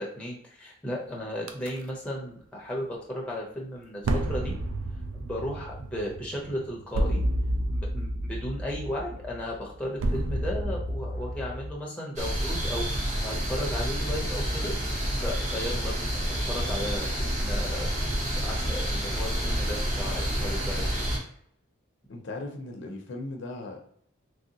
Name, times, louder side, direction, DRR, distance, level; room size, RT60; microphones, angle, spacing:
voice 1, 0.0-4.5 5.2-7.2 7.7-14.7 15.2-17.9 18.4-20.8, left 1 dB, 5° left, -3 dB, 0.5 m, -35 dB
sound 1, 1.5-1.7 4.0-11.7, right 1 dB, 75° right, 0.4 m, -30 dB
sound 2, 12.1-21.2, equal, 35° right, 0.7 m, -29 dB
voice 2, 22.1-23.8, left 2 dB, 60° left, 3 dB, 0.5 m, -37 dB
3.1 x 2.7 x 2.7 m, 0.66 s
head